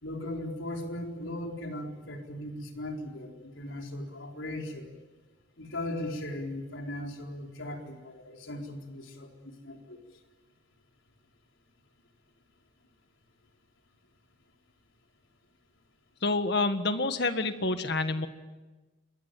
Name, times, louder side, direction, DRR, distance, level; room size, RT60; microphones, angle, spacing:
voice 1, 0.0-4.9 5.6-10.0, left 1 dB, 80° left, 2 dB, 4.1 m, -38 dB
voice 2, 16.2-18.3, left 3 dB, 55° left, 9 dB, 1.7 m, -28 dB
26.5 x 21.5 x 9.2 m, 1.2 s
head